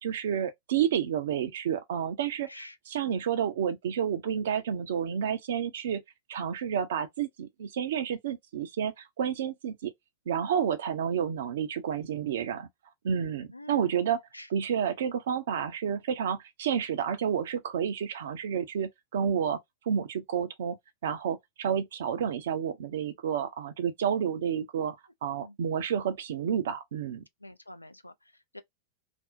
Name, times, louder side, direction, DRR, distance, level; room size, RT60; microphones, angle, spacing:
voice 1, 0.0-2.5 2.9-6.0 6.3-9.9 10.3-12.7 13.0-14.2 14.5-19.6 19.9-20.8 21.0-25.0 25.2-27.2, right 8 dB, 60° right, 0.5 m, -30 dB
voice 2, 13.5-13.9 14.3-14.5 25.4-25.6 27.4-28.1 28.5-28.6, left 2 dB, 85° left, 0.3 m, -46 dB
2.5 x 2.0 x 2.4 m
figure-of-eight pair, 90°, 0 cm